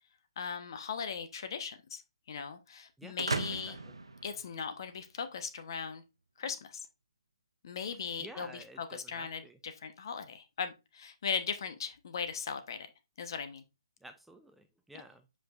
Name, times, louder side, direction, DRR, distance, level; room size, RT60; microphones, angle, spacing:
voice 1, 0.4-2.0 2.3-3.8 4.2-6.0 6.4-6.9 7.6-12.9 13.2-13.6, left 6 dB, 55° left, 1.2 m, -38 dB
sound 1, 3.2-5.1, right 3 dB, 90° right, 0.8 m, -37 dB
voice 2, 3.5-3.9 8.2-9.6 14.0-15.3, right 1 dB, 5° right, 0.5 m, -52 dB
7.9 x 5.1 x 2.6 m
hypercardioid pair, 140°, 3 cm